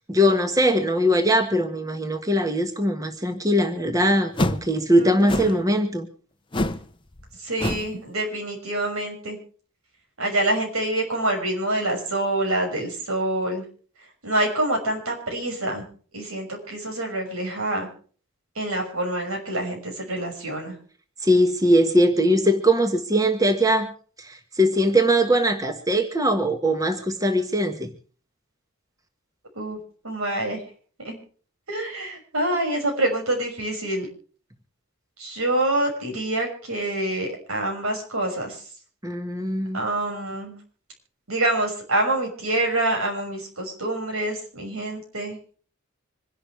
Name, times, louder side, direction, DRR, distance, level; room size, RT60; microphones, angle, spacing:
voice 1, 0.1-6.1 21.2-23.9 24.2-27.9 39.0-39.8, equal, 15° right, 6 dB, 1.5 m, -21 dB
sound 1, 4.3-4.7 5.3-5.6 6.5-6.9 7.1-7.3 7.6-7.9, left 1 dB, 25° left, 0.8 m, -25 dB
voice 2, 5.0-5.6 7.4-9.4 10.2-13.6 14.2-15.9 16.1-17.9 18.5-20.8 29.5-30.6 31.0-31.2 31.7-34.1 35.2-38.7 39.7-40.6 41.3-45.4, right 1 dB, 85° right, 2 dB, 6.1 m, -26 dB
26.0 x 11.5 x 3.3 m, 0.42 s
head